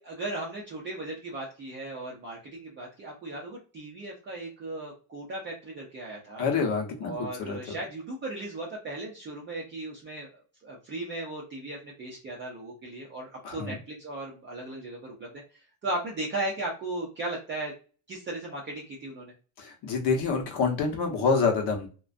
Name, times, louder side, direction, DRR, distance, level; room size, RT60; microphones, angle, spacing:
voice 1, 0.0-6.4 7.0-10.3 10.6-15.3 15.8-17.7 18.1-19.3, right 2 dB, 25° right, -4 dB, 0.4 m, -36 dB
voice 2, 6.4-7.8 13.4-13.8 19.6-21.9, left 5 dB, 55° left, 2 dB, 0.8 m, -27 dB
2.3 x 2.2 x 2.4 m, 0.36 s
cardioid pair, 150°, 48 cm